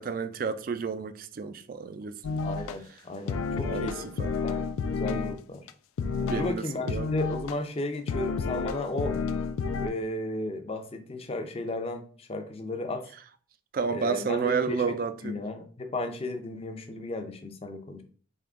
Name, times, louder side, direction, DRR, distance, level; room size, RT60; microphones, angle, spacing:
voice 1, 0.0-2.4 3.6-4.4 6.2-7.1 13.7-15.4, right 5 dB, 45° right, 0.3 m, -31 dB
sound 1, 2.2-2.7 3.3-5.4 5.7-5.8 6.0-6.6 6.9-7.5 8.1-9.9, left 5 dB, 90° left, 0.3 m, -30 dB
voice 2, 2.4-4.0 4.4-5.7 6.3-9.2 9.8-13.1 13.9-14.9 15.2-18.0, left 2 dB, 30° left, 0.5 m, -34 dB
3.7 x 2.9 x 3.5 m
head